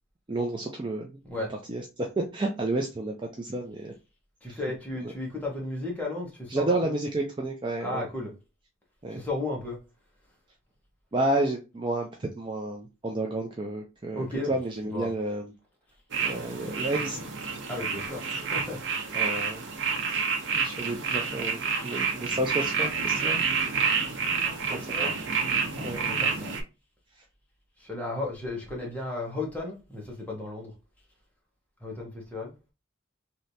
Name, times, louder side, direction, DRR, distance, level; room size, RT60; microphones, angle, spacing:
voice 1, 0.3-1.2 1.7-3.9 4.5-4.6 6.5-8.1 9.0-9.2 11.1-15.5 16.2-17.2 19.1-19.6 20.1-20.2 20.5-23.5 25.0-25.2 25.8-26.0, right 2 dB, 25° right, 0.4 m, -31 dB
voice 2, 1.2-1.6 4.4-7.0 7.8-8.4 9.1-9.8 14.1-15.2 17.7-19.1 24.4-25.2 25.7-26.5 27.8-30.7 31.8-32.5, left 2 dB, 5° left, 1.1 m, -35 dB
sound 1, 16.1-26.6, right 5 dB, 60° right, 0.7 m, -29 dB
3.2 x 2.8 x 2.7 m
head